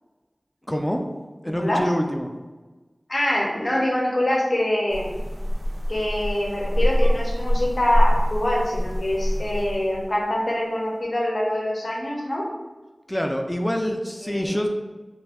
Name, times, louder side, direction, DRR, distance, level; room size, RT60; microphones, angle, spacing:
voice 1, 0.7-1.0 1.4-2.3 13.1-14.7, equal, 15° left, 3 dB, 0.3 m, -25 dB
voice 2, 1.4-1.8 3.1-5.2 5.9-12.5 13.8-13.9 14.2-14.5, left 1 dB, 70° left, -2 dB, 0.6 m, -24 dB
sound 1, 4.9-10.2, equal, 85° right, 0.4 m, -24 dB
2.5 x 2.2 x 3.4 m, 1.2 s
wide cardioid pair, 50°, 0 cm